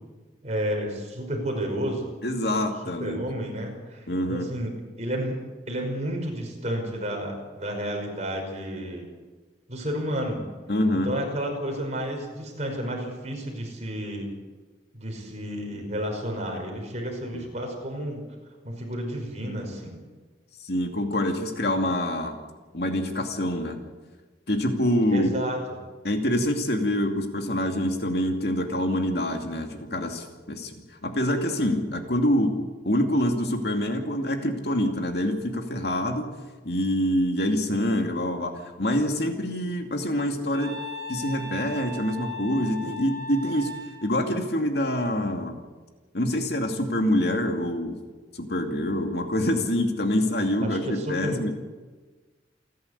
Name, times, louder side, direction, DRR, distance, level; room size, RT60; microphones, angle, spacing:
voice 1, 0.4-2.1 3.0-5.4 5.7-9.1 9.7-10.4 10.9-14.3 14.9-18.2 18.6-20.0 25.1-25.6 50.6-51.5, equal, 40° right, 2 dB, 5.3 m, -31 dB
voice 2, 2.2-3.2 4.1-4.5 10.7-11.2 17.3-17.4 20.6-22.4 22.7-23.8 24.5-25.3 26.0-30.7 31.0-36.3 36.6-40.8 41.1-43.7 44.0-45.6 46.1-48.0 48.4-51.5, left 1 dB, 60° left, 4 dB, 2.5 m, -26 dB
Wind instrument woodwind instrument, 40.5-44.2, left 1 dB, 65° right, 5.1 m, -37 dB
28.5 x 11.0 x 8.3 m, 1.3 s
head